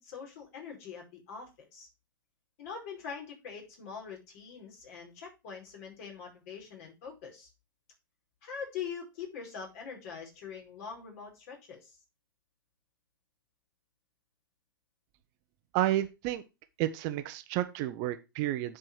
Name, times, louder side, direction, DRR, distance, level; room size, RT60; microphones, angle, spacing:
voice 1, 0.0-1.9 2.6-7.5 8.4-12.0, left 6 dB, 40° left, 0 dB, 4.6 m, -43 dB
voice 2, 15.7-16.4 16.8-18.8, right 14 dB, 35° right, 10 dB, 0.8 m, -31 dB
10.5 x 4.9 x 4.6 m, 0.26 s
figure-of-eight pair, 115°, 11 cm